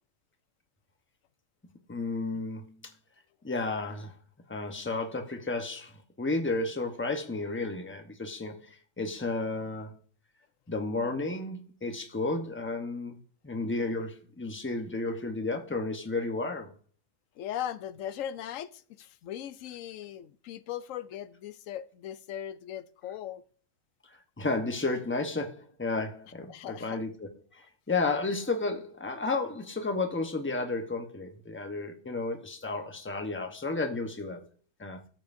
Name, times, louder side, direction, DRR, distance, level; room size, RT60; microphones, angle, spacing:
voice 1, 1.9-2.9 3.4-4.1 4.5-10.0 10.7-13.2 13.4-16.7 24.4-27.3 27.6-34.4 34.8-35.0, left 3 dB, 10° left, 0.9 m, -32 dB
voice 2, 17.4-23.4 26.5-27.0, left 10 dB, 85° left, 1.0 m, -39 dB
14.0 x 7.6 x 2.6 m
omnidirectional pair, 1.3 m